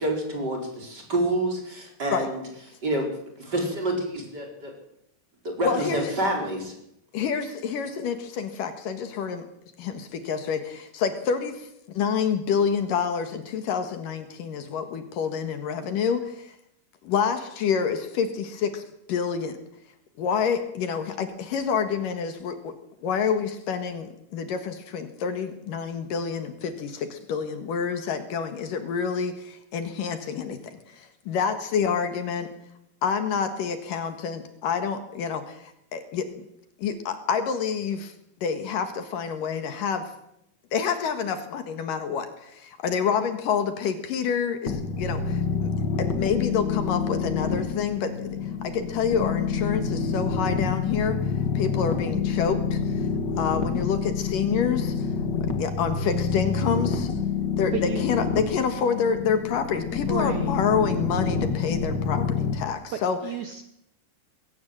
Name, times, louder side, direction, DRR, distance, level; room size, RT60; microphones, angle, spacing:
voice 1, 0.0-2.4 2.8-3.1 3.4-4.8 5.4-6.8, right 1 dB, 25° right, 1 dB, 4.8 m, -28 dB
voice 2, 5.6-6.1 7.1-9.5 9.8-16.5 17.0-19.6 20.2-22.7 23.0-32.5 33.0-36.3 36.8-38.1 38.4-40.0 40.7-45.7 46.0-48.4 48.6-51.2 51.5-53.1 53.4-55.1 55.6-57.1 57.6-63.2, left 6 dB, 65° left, 8 dB, 3.1 m, -28 dB
sound 1, 44.7-62.5, left 5 dB, 45° left, 1.5 m, -27 dB
voice 3, 60.1-60.6 63.2-63.6, right 9 dB, 65° right, 8 dB, 2.1 m, -31 dB
20.5 x 17.0 x 7.9 m, 0.80 s
omnidirectional pair, 4.3 m